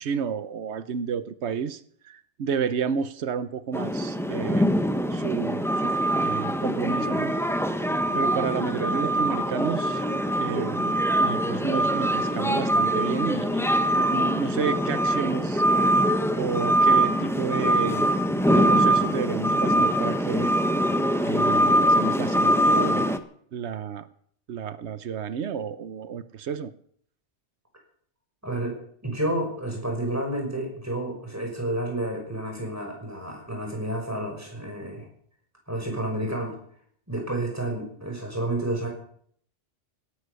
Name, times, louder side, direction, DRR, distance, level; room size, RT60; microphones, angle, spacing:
voice 1, 0.0-4.7 5.1-7.3 8.1-10.0 10.4-13.7 13.9-15.6 16.4-18.1 18.5-20.5 21.3-23.1 23.5-24.1 24.5-26.7, right 7 dB, 90° right, 13 dB, 1.1 m, -31 dB
sound 1, 3.7-23.2, equal, 5° left, 1.0 m, -23 dB
voice 2, 28.4-28.8 29.0-35.0 35.7-36.6 37.1-38.9, right 1 dB, 15° right, 1 dB, 5.8 m, -30 dB
17.5 x 11.5 x 6.9 m, 0.62 s
omnidirectional pair, 1.1 m